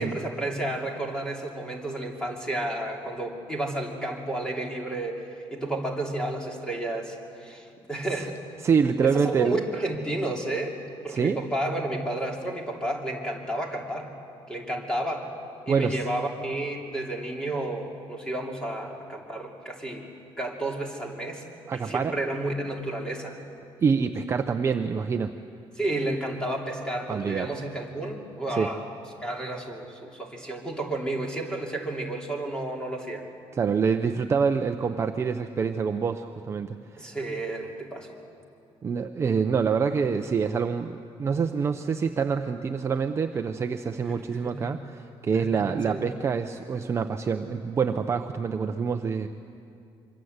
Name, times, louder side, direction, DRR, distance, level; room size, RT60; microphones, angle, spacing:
voice 1, 0.0-8.4 9.0-10.8 11.0-14.1 14.5-15.3 15.7-20.0 20.4-21.4 21.7-23.4 25.8-28.8 29.2-33.3 37.0-38.1 44.0-44.7 45.3-46.1, right 1 dB, 10° left, 0 dB, 3.1 m, -31 dB
voice 2, 8.6-9.6 11.1-11.4 15.7-16.0 21.7-22.1 23.8-25.3 27.1-27.5 28.5-28.7 33.5-37.1 38.8-49.3, right 6 dB, 25° right, 6 dB, 0.7 m, -26 dB
26.0 x 24.0 x 8.1 m, 2.5 s
cardioid pair, 175°, 10 cm